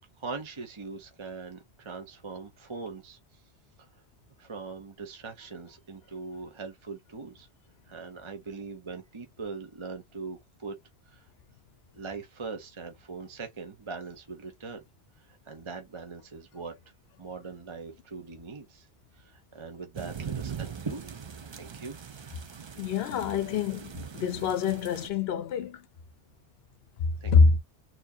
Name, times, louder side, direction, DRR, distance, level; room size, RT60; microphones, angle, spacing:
voice 1, 0.2-3.4 3.8-3.9 4.4-7.5 7.9-10.7 11.1-11.3 11.9-14.8 15.2-16.8 17.2-18.9 19.1-21.2 21.5-22.0 27.2-27.3, right 4 dB, 30° right, 0.8 m, -41 dB
sound 1, 19.9-25.1, right 7 dB, 45° right, 0.3 m, -41 dB
voice 2, 22.8-25.8 27.3-27.6, left 5 dB, 65° left, 0.8 m, -25 dB
4.4 x 2.8 x 2.7 m
omnidirectional pair, 1.2 m